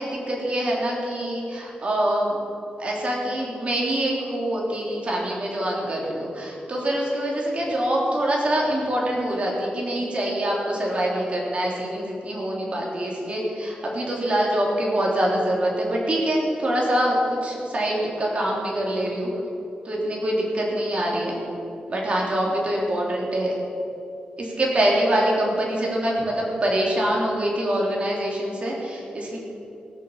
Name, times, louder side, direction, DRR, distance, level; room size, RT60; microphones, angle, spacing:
voice 1, 0.0-2.4 2.8-19.3 19.9-21.4 21.9-23.5 24.4-29.4, right 1 dB, 40° right, -3 dB, 3.5 m, -25 dB
17.5 x 7.2 x 7.3 m, 2.9 s
wide cardioid pair, 110°, 3 cm